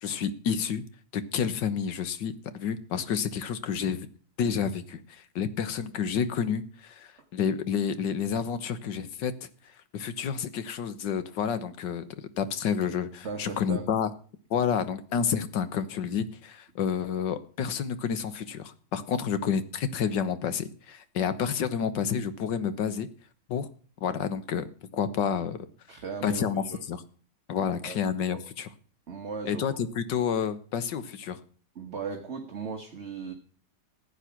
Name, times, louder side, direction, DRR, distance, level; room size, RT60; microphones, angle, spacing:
voice 1, 0.0-0.8 1.1-4.1 4.4-9.3 9.9-14.1 14.5-23.1 23.5-23.7 24.0-24.7 24.9-25.7 26.2-27.0 27.5-28.7 29.5-31.4, left 7 dB, 80° left, 13 dB, 1.7 m, -29 dB
voice 2, 13.2-13.8 25.9-26.8 27.6-28.0 28.3-28.4 29.1-29.6 31.7-33.3, right 5 dB, 40° right, 4 dB, 1.6 m, -37 dB
15.0 x 9.1 x 5.9 m, 0.43 s
omnidirectional pair, 1.9 m